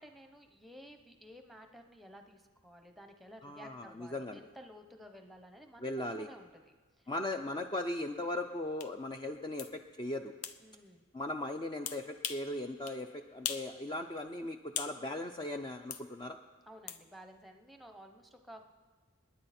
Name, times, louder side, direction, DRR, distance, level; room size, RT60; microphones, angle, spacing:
voice 1, 0.0-7.1 10.6-11.1 16.7-18.7, equal, ahead, 5 dB, 0.9 m, -54 dB
voice 2, 3.4-4.4 5.8-6.3 7.1-10.3 11.1-16.4, left 1 dB, 20° left, 5 dB, 0.5 m, -38 dB
sound 1, 8.8-8.9 9.6-9.7 10.4-10.6 11.9-12.5 12.9-13.0 13.4-13.7 14.1-15.0 15.9-16.1 16.9-17.0, left 8 dB, 80° left, 0.8 m, -39 dB
28.0 x 9.9 x 4.3 m, 1.4 s
head